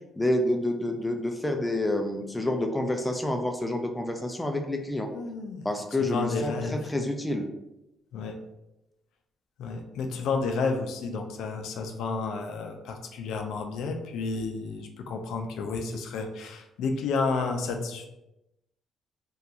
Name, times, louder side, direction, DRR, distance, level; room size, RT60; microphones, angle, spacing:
voice 1, 0.2-5.1 5.6-7.5, left 1 dB, 15° left, 4 dB, 0.4 m, -28 dB
voice 2, 5.1-5.7 6.0-6.8 8.1-8.4 9.6-18.1, left 4 dB, 85° left, 4 dB, 0.3 m, -31 dB
2.7 x 2.3 x 2.4 m, 0.91 s
cardioid pair, 90°, 0 cm